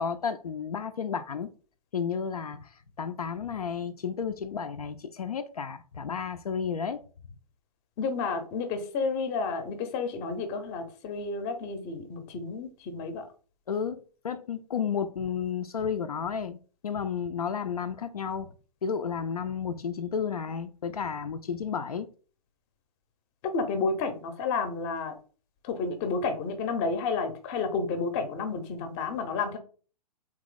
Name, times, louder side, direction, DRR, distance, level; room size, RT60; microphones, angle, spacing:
voice 1, 0.0-1.5 1.9-7.0 13.7-16.6 16.8-18.5 18.8-22.1, left 6 dB, 70° left, 0.4 m, -32 dB
voice 2, 8.0-13.3 23.5-25.2 25.6-29.6, left 4 dB, 25° left, 0.7 m, -31 dB
3.7 x 2.9 x 3.8 m
figure-of-eight pair, 115°, 20 cm